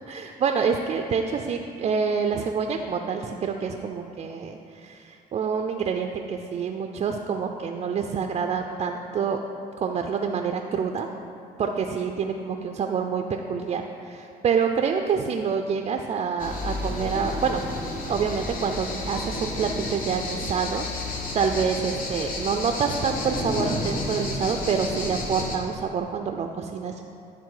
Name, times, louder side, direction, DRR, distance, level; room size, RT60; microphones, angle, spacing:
voice 1, 0.0-9.4 9.8-11.1 11.6-17.6 18.1-27.0, right 6 dB, 35° right, 4 dB, 0.4 m, -27 dB
sound 1, 16.4-25.6, left 2 dB, 55° left, 1.1 m, -31 dB
10.5 x 3.6 x 4.8 m, 2.7 s
cardioid pair, 110°, 17 cm